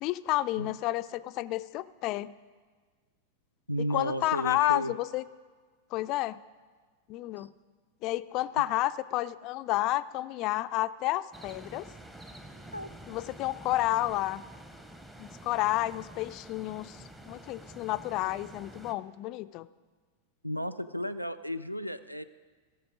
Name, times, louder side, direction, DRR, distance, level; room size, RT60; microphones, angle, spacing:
voice 1, 0.0-2.3 3.9-5.2 5.9-6.4 7.1-7.5 8.0-11.9 13.1-14.4 15.2-17.0 17.3-19.7, left 16 dB, 40° left, 14 dB, 0.3 m, -30 dB
voice 2, 3.7-4.9 7.4-7.5 12.7-12.9 20.4-22.2, equal, 90° right, 14 dB, 0.4 m, -33 dB
sound 1, 11.3-18.9, right 1 dB, 10° right, 0.8 m, -48 dB
16.5 x 6.9 x 5.0 m, 1.5 s
figure-of-eight pair, 90°, 0 cm